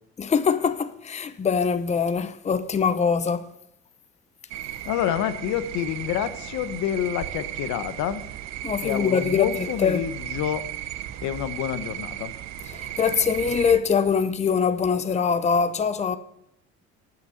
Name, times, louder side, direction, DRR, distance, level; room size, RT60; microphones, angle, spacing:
voice 1, 0.2-3.4 8.6-10.0 12.7-16.2, left 6 dB, 25° left, 0.7 m, -23 dB
sound 1, 4.5-13.8, right 13 dB, 65° right, 0.8 m, -35 dB
voice 2, 4.9-8.2 8.8-10.6 11.2-12.3, left 11 dB, 80° left, 0.9 m, -28 dB
10.5 x 6.1 x 8.0 m
cardioid pair, 120°, 29 cm